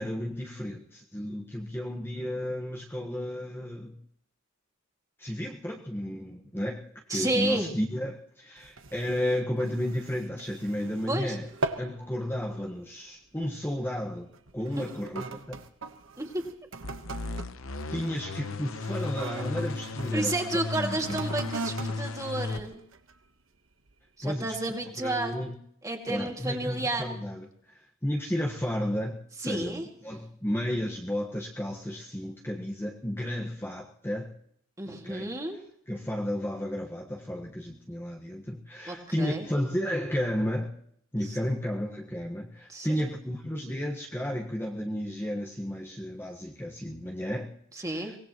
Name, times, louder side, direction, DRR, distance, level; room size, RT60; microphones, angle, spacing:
voice 1, 0.0-3.9 5.2-11.5 11.8-15.6 17.9-20.3 20.8-21.3 24.2-24.5 25.0-25.6 26.1-34.3 34.9-35.2 35.9-40.8 41.1-48.2, equal, 10° left, -1 dB, 1.4 m, -33 dB
voice 2, 7.1-7.7 11.1-11.4 14.8-14.9 16.2-16.4 20.1-22.8 24.2-25.5 25.8-27.1 29.4-29.9 34.8-35.6 38.9-39.5 41.3-41.4 42.7-42.9 47.8-48.1, right 2 dB, 15° right, 2 dB, 2.3 m, -31 dB
sound 1, 8.6-11.2 11.4-12.0 12.4-12.7 13.4-13.6 14.3-20.2 20.9-23.3 23.9-24.0, right 3 dB, 70° right, 1.3 m, -40 dB
sound 2, 16.8-22.6, left 3 dB, 75° left, 0.9 m, -35 dB
24.0 x 19.0 x 3.1 m, 0.65 s
head